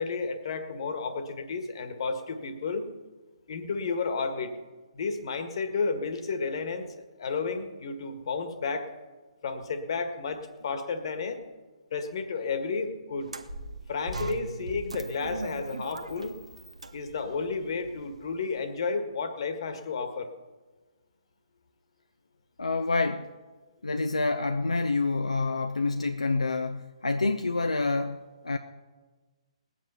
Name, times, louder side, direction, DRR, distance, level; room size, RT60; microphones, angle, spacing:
voice 1, 0.0-2.9 3.5-4.5 4.9-8.9 9.4-11.4 11.9-13.3 13.9-16.4 16.9-20.3, left 4 dB, 50° left, 8 dB, 1.6 m, -32 dB
sound 1, 13.2-18.5, right 2 dB, 75° right, 1.1 m, -40 dB
voice 2, 22.6-23.3 23.8-28.6, left 3 dB, 75° left, 7 dB, 0.7 m, -27 dB
19.5 x 8.6 x 5.6 m, 1.3 s
figure-of-eight pair, 130°, 3 cm